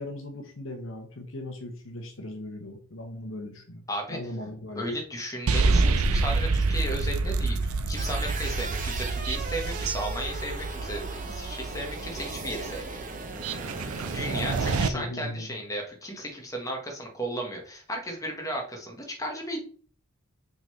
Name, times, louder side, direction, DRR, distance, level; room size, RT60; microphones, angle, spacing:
voice 1, 0.0-3.8 4.1-4.9 14.3-15.5, left 1 dB, 60° left, 4 dB, 1.2 m, -38 dB
voice 2, 3.9-4.2 4.7-13.0 14.1-19.6, equal, 15° left, 1 dB, 1.4 m, -35 dB
sound 1, 5.5-14.9, right 3 dB, 80° right, 0.6 m, -28 dB
sound 2, 8.0-14.8, right 3 dB, 35° right, 0.9 m, -38 dB
5.7 x 3.9 x 4.5 m, 0.44 s
head